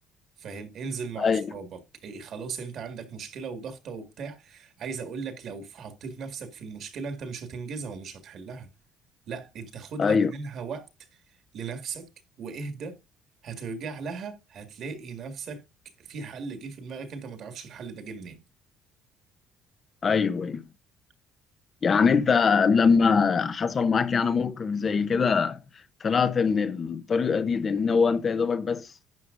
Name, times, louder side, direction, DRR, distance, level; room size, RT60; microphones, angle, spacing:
voice 1, 0.4-8.7 9.3-12.1 12.4-13.0 13.4-15.6 16.0-18.4, right 5 dB, 50° right, 1.8 m, -38 dB
voice 2, 10.0-10.3 20.0-20.6 21.8-25.6 26.0-28.9, left 5 dB, 30° left, 0.7 m, -23 dB
11.5 x 9.2 x 2.5 m
cardioid pair, 160°, 0 cm